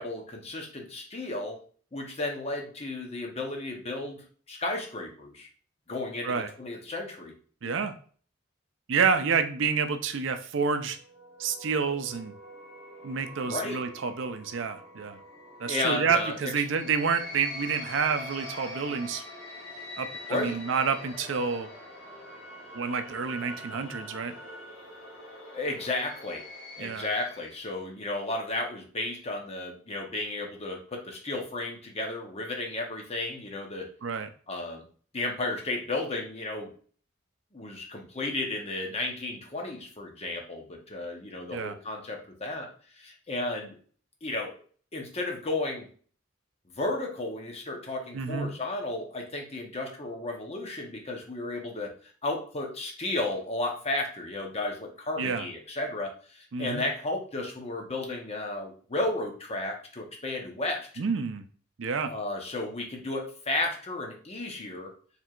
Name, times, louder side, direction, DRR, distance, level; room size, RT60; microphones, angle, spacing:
voice 1, 0.0-1.6 1.9-4.2 4.5-5.5 5.9-7.3 13.5-13.8 15.7-16.5 20.3-20.6 25.5-26.4 26.8-33.9 34.5-34.9 35.1-36.7 37.5-42.7 43.0-43.8 44.2-44.5 44.9-45.9 46.8-51.9 52.2-60.9 62.1-64.9, left 2 dB, 30° left, 2 dB, 0.9 m, -33 dB
voice 2, 7.6-7.9 8.9-11.0 11.4-12.3 13.0-15.2 15.6-19.2 20.0-21.7 22.7-24.3 26.8-27.1 34.0-34.3 41.5-41.8 48.1-48.5 55.2-55.5 56.5-56.8 61.0-61.4 61.8-62.1, right 5 dB, 70° right, 9 dB, 0.5 m, -29 dB
sound 1, 10.9-27.7, left 1 dB, 75° left, 1.7 m, -44 dB
4.5 x 3.4 x 2.4 m, 0.44 s
head